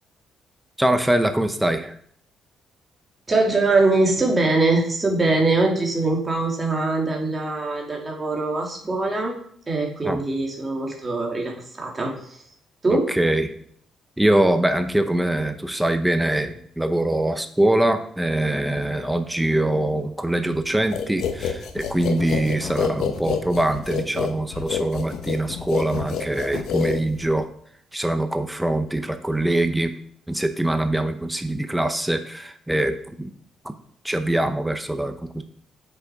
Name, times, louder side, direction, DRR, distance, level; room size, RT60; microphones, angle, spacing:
voice 1, 0.8-1.9 10.0-10.2 12.9-13.5 14.2-27.5 27.9-29.9 30.3-33.3 33.6-33.8 34.0-35.4, right 1 dB, 5° right, 8 dB, 0.9 m, -23 dB
voice 2, 3.3-9.3 9.7-12.1 12.8-13.1, right 2 dB, 25° right, 0 dB, 2.6 m, -22 dB
sound 1, 20.9-27.4, left 8 dB, 80° left, 1.2 m, -28 dB
7.7 x 6.8 x 4.8 m, 0.63 s
cardioid pair, 90°, 0 cm